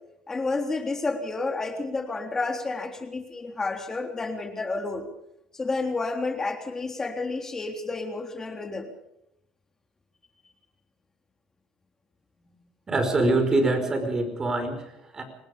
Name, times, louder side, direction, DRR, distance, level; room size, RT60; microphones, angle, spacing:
voice 1, 0.3-5.1 5.5-8.9 12.4-12.6, left 3 dB, 20° left, 5 dB, 3.6 m, -30 dB
voice 2, 12.9-15.2, right 2 dB, 20° right, 7 dB, 5.1 m, -24 dB
26.0 x 19.5 x 5.2 m, 0.82 s
cardioid pair, 125°, 3 cm